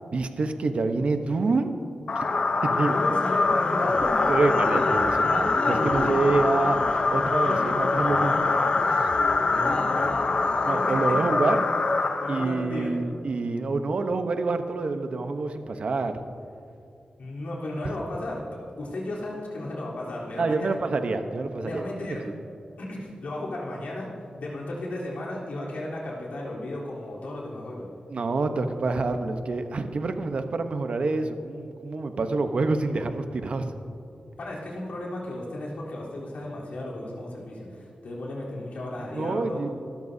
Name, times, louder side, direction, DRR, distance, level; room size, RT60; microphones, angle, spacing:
voice 1, 0.1-1.7 2.2-2.3 2.6-2.9 4.3-8.5 8.8-9.1 10.6-11.6 12.3-16.2 20.4-21.8 22.2-22.3 28.1-33.7 39.1-39.7, right 3 dB, 55° right, 7 dB, 0.9 m, -27 dB
sound 1, 2.1-12.8, left 3 dB, 45° left, 0.7 m, -24 dB
voice 2, 2.7-4.5 9.5-10.1 10.4-10.5 10.9-11.2 12.2-12.9 17.2-20.8 21.6-22.3 22.8-24.1 24.4-27.9 34.4-39.7, left 1 dB, 85° left, -5 dB, 3.6 m, -34 dB
26.0 x 13.0 x 2.7 m, 2.6 s
wide cardioid pair, 160°, 2 cm